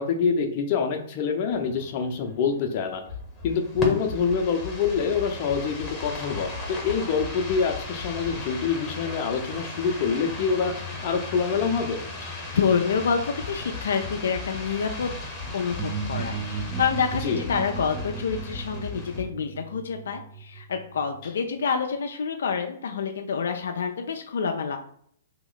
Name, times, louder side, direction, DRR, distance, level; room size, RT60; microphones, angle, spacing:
voice 1, 0.0-3.0 3.4-12.1 17.2-17.4, left 6 dB, 40° left, 3 dB, 0.7 m, -26 dB
sound 1, 1.5-19.2, left 3 dB, 10° left, 1.1 m, -36 dB
voice 2, 12.2-15.1 15.5-24.8, left 6 dB, 80° left, 4 dB, 0.4 m, -27 dB
sound 2, 15.8-21.4, right 5 dB, 20° right, 0.4 m, -36 dB
2.9 x 2.9 x 4.0 m, 0.64 s
hypercardioid pair, 145°, 0 cm